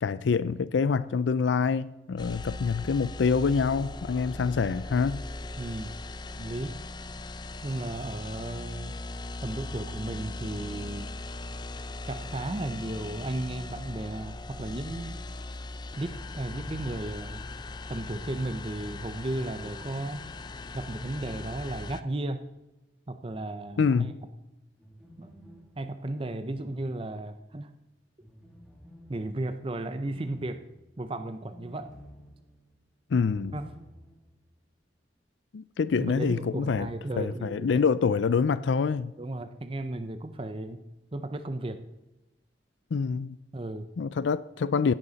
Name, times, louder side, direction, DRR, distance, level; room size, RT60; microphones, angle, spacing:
voice 1, 0.0-5.2 23.8-24.1 33.1-33.6 35.5-39.1 42.9-43.4 44.0-44.9, left 5 dB, 80° left, 0.4 m, -26 dB
sound 1, 2.2-22.0, left 2 dB, 25° left, 0.5 m, -39 dB
voice 2, 5.6-5.9 6.4-6.8 7.6-8.9 9.4-11.1 12.1-15.2 15.9-17.4 17.9-20.2 20.7-22.5 23.1-24.1 25.2-25.3 25.8-27.7 29.1-30.6 31.0-31.9 33.5-33.7 36.0-37.7 39.2-40.8 41.1-41.8 43.5-43.9, right 1 dB, 30° right, 0.6 m, -34 dB
sound 2, 23.3-24.0 24.8-27.5 28.2-34.4 34.7-34.8 36.6-37.0, equal, 5° right, 2.7 m, -53 dB
17.0 x 10.5 x 4.1 m
head